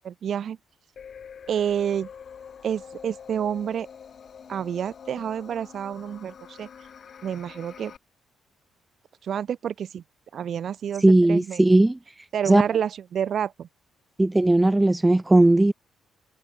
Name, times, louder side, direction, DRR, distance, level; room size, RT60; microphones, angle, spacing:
voice 1, 0.0-0.6 1.5-2.1 2.6-3.9 4.5-6.7 7.2-7.9 9.2-10.0 10.3-11.6 12.3-13.7, right 8 dB, 60° right, 2.7 m, -29 dB
sound 1, 1.0-8.0, left 7 dB, 50° left, 4.6 m, -45 dB
voice 2, 11.0-12.0 12.5-12.6 14.2-15.7, right 2 dB, 10° right, 0.7 m, -17 dB
cardioid pair, 90°, 0 cm